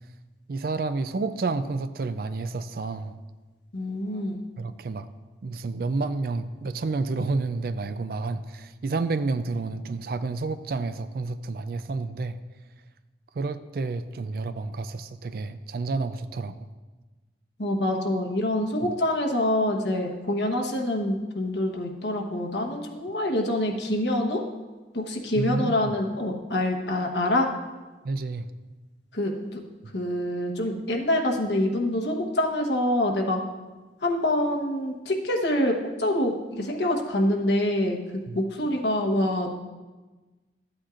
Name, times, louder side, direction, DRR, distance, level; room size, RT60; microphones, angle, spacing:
voice 1, 0.5-3.2 4.6-5.1 5.4-12.4 13.4-16.7 18.8-18.9 25.4-25.9 28.0-28.5 38.3-38.4, right 3 dB, 55° right, 11 dB, 0.4 m, -30 dB
voice 2, 3.7-4.4 17.6-24.4 24.9-27.5 29.1-29.6 29.9-33.4 34.0-38.0 38.3-39.5, left 1 dB, 75° left, 1 dB, 1.1 m, -26 dB
13.0 x 8.7 x 2.5 m, 1.2 s
head